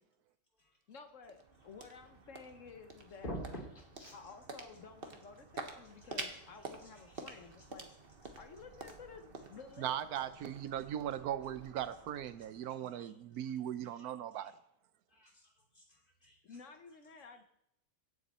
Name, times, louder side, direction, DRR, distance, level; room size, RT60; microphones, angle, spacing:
sound 1, 0.8-13.2, right 3 dB, 40° right, 1.3 m, -50 dB
voice 1, 0.9-3.3 4.1-7.9 8.4-10.0 16.4-17.4, left 5 dB, 60° left, 7 dB, 1.2 m, -53 dB
voice 2, 3.2-4.3 6.0-6.2 6.6-7.9 8.2-8.4 12.4-13.1 13.4-13.5 13.9-14.5 15.1-16.6 17.1-17.3, right 1 dB, 30° left, -1 dB, 3.0 m, -50 dB
voice 3, 9.8-14.5, right 10 dB, 80° right, 13 dB, 1.2 m, -39 dB
17.0 x 7.2 x 4.2 m, 0.78 s
omnidirectional pair, 1.6 m